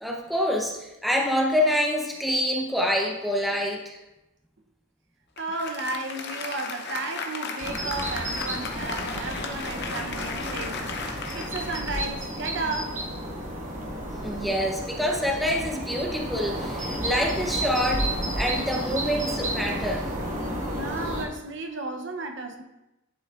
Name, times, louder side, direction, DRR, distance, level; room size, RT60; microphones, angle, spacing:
voice 1, 0.0-4.0 14.2-20.0, equal, ahead, -1 dB, 0.7 m, -26 dB
Applause, 5.4-13.0, left 4 dB, 50° left, 0.8 m, -35 dB
voice 2, 5.4-10.9 11.3-13.0 20.7-22.6, right 2 dB, 55° right, 4 dB, 0.8 m, -33 dB
sound 1, 7.6-21.2, right 1 dB, 35° right, 1.2 m, -32 dB
11.0 x 6.1 x 2.5 m, 0.94 s
head